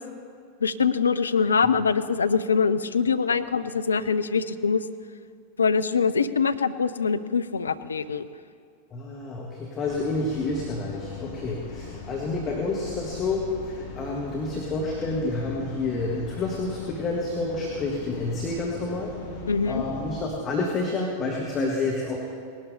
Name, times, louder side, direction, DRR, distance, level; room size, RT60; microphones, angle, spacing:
voice 1, 0.6-4.8 5.6-8.3 19.5-19.8, left 5 dB, 75° left, 12 dB, 0.5 m, -23 dB
voice 2, 8.9-22.2, left 3 dB, 25° left, -2 dB, 1.7 m, -29 dB
sound 1, 9.8-20.3, left 3 dB, 55° left, 1.4 m, -40 dB
19.0 x 12.0 x 4.1 m, 2.2 s
figure-of-eight pair, 90°, 0 cm